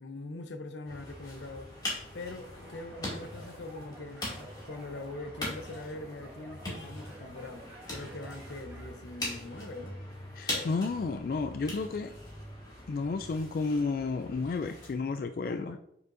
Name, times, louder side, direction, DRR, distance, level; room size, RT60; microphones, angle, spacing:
voice 1, 0.0-1.9 2.1-10.0 10.5-10.7 15.5-15.8, left 2 dB, 85° left, 0.8 m, -43 dB
sound 1, 0.8-14.9, left 1 dB, 25° left, 2.4 m, -42 dB
sound 2, 2.6-8.9, right 1 dB, 15° right, 1.7 m, -52 dB
voice 2, 10.3-12.2 12.9-15.8, left 4 dB, 55° left, 0.3 m, -32 dB
8.2 x 6.9 x 2.6 m
head